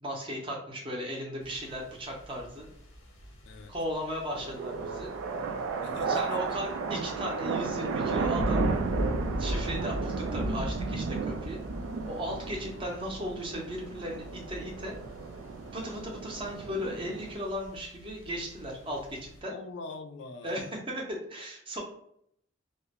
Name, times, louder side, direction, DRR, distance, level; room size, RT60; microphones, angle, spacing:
voice 1, 0.0-2.7 3.7-5.1 6.1-8.6 9.4-11.6 12.1-14.9 15.7-19.5 20.4-21.8, equal, 25° right, 0 dB, 0.6 m, -36 dB
sound 1, 1.4-19.4, equal, 85° left, 0.8 m, -40 dB
voice 2, 3.4-3.7 5.8-6.6 19.5-20.8, left 3 dB, 65° left, 6 dB, 0.3 m, -43 dB
sound 2, 4.3-17.3, right 4 dB, 85° right, 0.3 m, -34 dB
2.4 x 2.1 x 2.8 m, 0.70 s
head